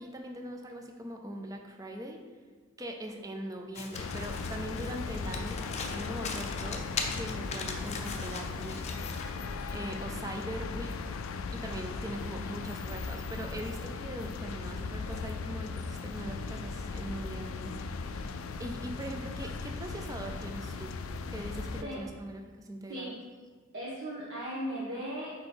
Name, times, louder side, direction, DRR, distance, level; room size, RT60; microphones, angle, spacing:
voice 1, 0.0-2.2 2.8-6.9 7.1-9.2 9.7-11.0 11.5-21.0 21.3-23.2, right 1 dB, 15° right, 3 dB, 0.5 m, -41 dB
Domestic sounds home sounds, 3.7-9.4, left 4 dB, 30° left, 0.6 m, -40 dB
sound 1, 3.9-21.8, left 4 dB, 75° left, 0.4 m, -38 dB
voice 2, 23.7-25.3, equal, 55° right, -8 dB, 1.2 m, -37 dB
4.6 x 4.4 x 5.2 m, 1.5 s
head